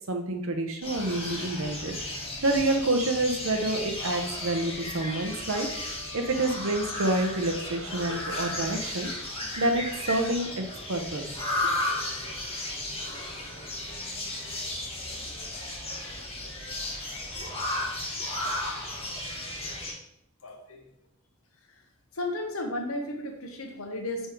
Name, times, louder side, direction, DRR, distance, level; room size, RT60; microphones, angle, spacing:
voice 1, 0.1-2.0 2.4-5.7 6.1-9.1 9.6-10.6 10.9-11.3, right 2 dB, 70° right, 4 dB, 0.9 m, -28 dB
sound 1, 0.8-19.9, left 1 dB, 30° left, 1.7 m, -34 dB
voice 2, 20.4-20.9 21.7-21.8 22.1-24.3, left 1 dB, 80° left, 2 dB, 1.2 m, -34 dB
5.4 x 3.8 x 4.6 m, 0.76 s
head